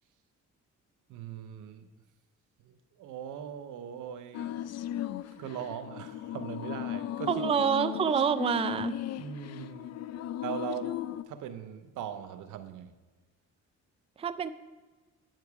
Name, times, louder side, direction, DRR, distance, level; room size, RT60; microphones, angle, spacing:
voice 1, 1.1-1.9 2.6-4.6 5.3-7.5 9.2-9.9 10.4-11.0 11.3-12.9, right 9 dB, 85° right, 10 dB, 0.8 m, -40 dB
sound 1, 4.3-11.2, left 12 dB, 60° left, 0.5 m, -37 dB
voice 2, 7.3-9.0 14.2-14.5, right 7 dB, 20° right, 12 dB, 0.4 m, -27 dB
9.1 x 7.8 x 4.8 m, 1.3 s
cardioid pair, 90°, 30 cm